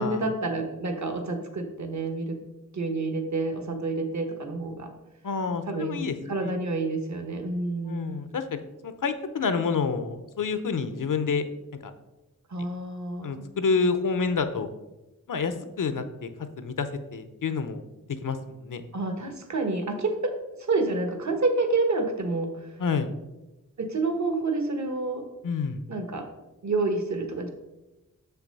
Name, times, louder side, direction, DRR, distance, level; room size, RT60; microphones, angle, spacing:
voice 1, 0.0-2.4 2.7-4.9 5.7-8.2 12.5-13.5 18.9-20.3 20.6-22.7 23.8-25.2 25.9-26.2 26.6-27.5, right 3 dB, 60° right, 5 dB, 1.3 m, -28 dB
voice 2, 5.2-6.1 7.8-8.4 8.8-11.5 11.8-11.9 13.2-14.7 15.3-16.3 16.6-17.8 18.2-18.4 18.6-18.8 22.8-23.1 25.4-25.8, left 5 dB, 75° left, 10 dB, 0.8 m, -28 dB
6.7 x 5.8 x 5.3 m, 1.0 s
wide cardioid pair, 95°, 32 cm